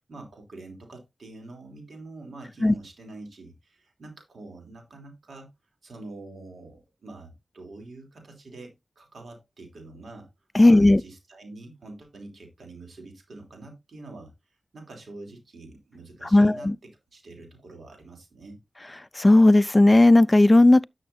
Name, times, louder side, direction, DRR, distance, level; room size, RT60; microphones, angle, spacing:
voice 1, 0.1-5.5 5.8-10.3 10.6-18.6, right 2 dB, 80° right, 3.1 m, -45 dB
voice 2, 10.5-11.0 16.3-16.7 19.2-20.8, left 2 dB, 30° left, 0.4 m, -15 dB
11.0 x 6.4 x 2.7 m
cardioid pair, 40°, 0 cm